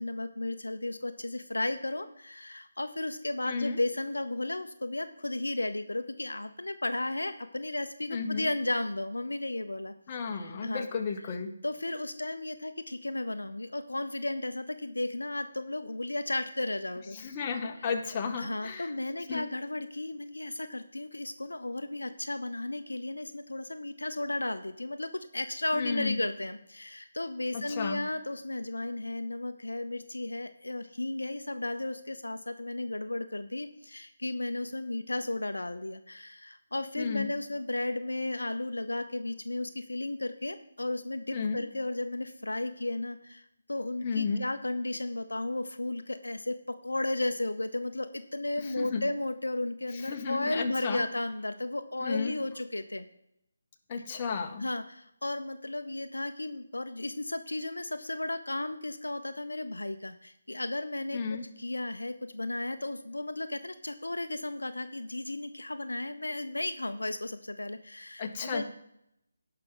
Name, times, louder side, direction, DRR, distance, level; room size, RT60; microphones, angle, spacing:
voice 1, 0.0-9.9 10.3-10.9 11.6-17.2 18.4-46.6 46.8-53.1 54.6-68.6, left 2 dB, 75° left, 9 dB, 0.7 m, -34 dB
voice 2, 3.4-3.8 8.1-8.5 10.1-11.5 17.1-18.9 19.3-19.4 25.7-26.2 27.5-28.0 37.0-37.3 41.3-41.6 44.0-44.4 48.6-49.0 50.0-51.1 52.0-52.4 53.9-54.6 61.1-61.4 68.2-68.6, left 5 dB, 25° left, 3 dB, 1.1 m, -33 dB
16.5 x 5.8 x 3.9 m, 0.78 s
figure-of-eight pair, 150°, 0 cm